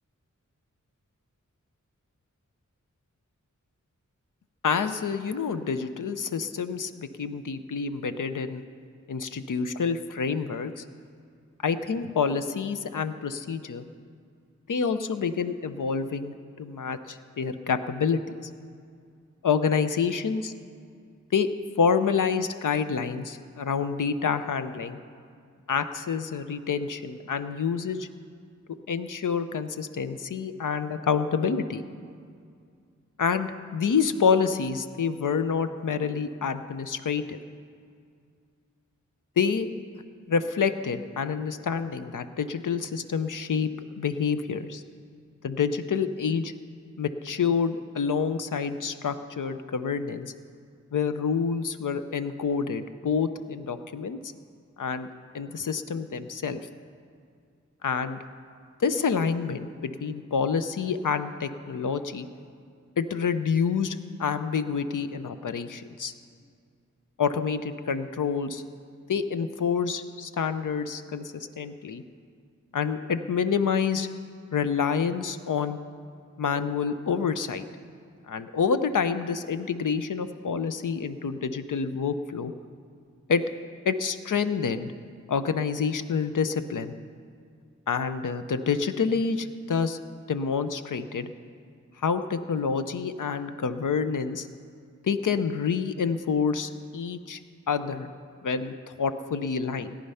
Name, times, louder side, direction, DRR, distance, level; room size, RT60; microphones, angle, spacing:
voice 1, 4.6-8.6 9.1-10.8 11.6-13.8 14.7-18.2 19.4-20.5 21.3-25.0 25.7-28.1 28.9-31.8 33.2-37.4 39.4-39.7 40.3-43.7 44.0-44.8 45.4-46.5 47.0-50.3 50.9-54.2 54.8-55.1 55.3-56.6 57.8-58.2 58.8-62.3 63.0-66.1 67.2-68.6 69.1-72.0 72.7-74.1 74.5-75.8 76.4-77.6 78.3-82.5 83.3-83.4 83.8-84.9 85.3-86.9 87.9-90.0 90.3-91.3 92.0-94.5 95.0-97.4 97.7-98.1 98.4-100.0, left 6 dB, 85° left, 10 dB, 0.7 m, -28 dB
17.5 x 10.0 x 5.6 m, 2.3 s
wide cardioid pair, 85°, 31 cm